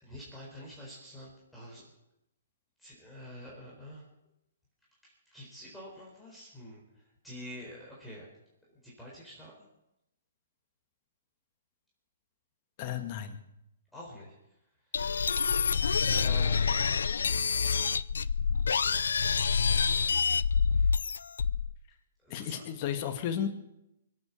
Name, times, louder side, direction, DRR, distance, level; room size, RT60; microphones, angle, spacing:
voice 1, 0.0-1.8 2.8-4.0 5.0-6.8 7.2-8.3 8.8-9.5 13.9-14.3 16.1-17.0 20.7-21.0 22.2-22.6, equal, ahead, -6 dB, 4.2 m, -46 dB
voice 2, 12.8-13.4 22.3-23.5, left 9 dB, 35° left, 6 dB, 2.0 m, -33 dB
sound 1, 14.9-21.7, left 5 dB, 85° left, 0.5 m, -27 dB
23.5 x 8.8 x 7.1 m, 0.87 s
hypercardioid pair, 155°, 0 cm